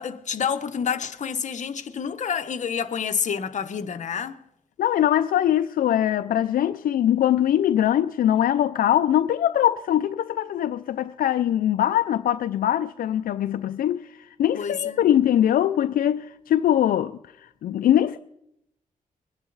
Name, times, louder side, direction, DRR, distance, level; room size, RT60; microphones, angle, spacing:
voice 1, 0.0-4.4 14.6-15.0, left 7 dB, 60° left, 0.9 m, -28 dB
voice 2, 4.8-18.2, left 11 dB, 85° left, 0.4 m, -22 dB
22.5 x 9.9 x 4.0 m
cardioid pair, 95°, 14 cm